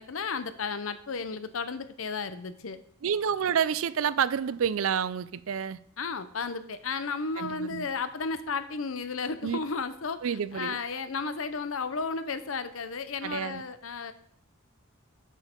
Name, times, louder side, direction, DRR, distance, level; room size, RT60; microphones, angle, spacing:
voice 1, 0.0-2.8 6.0-14.1, left 4 dB, 75° left, 0.8 m, -33 dB
voice 2, 3.0-5.8 7.4-7.9 9.4-9.6 10.2-10.8 13.2-13.6, right 7 dB, 75° right, 0.4 m, -29 dB
7.5 x 6.3 x 5.2 m
head